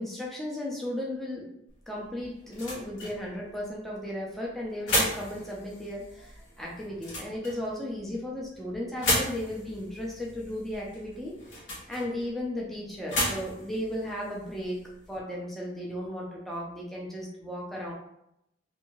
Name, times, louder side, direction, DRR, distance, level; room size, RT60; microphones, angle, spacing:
voice 1, 0.0-1.5 1.9-11.3 11.9-14.8 15.1-17.9, left 1 dB, ahead, -4 dB, 0.4 m, -35 dB
sound 1, 1.7-15.2, left 1 dB, 80° left, 1.1 m, -35 dB
2.6 x 2.6 x 2.9 m, 0.80 s
head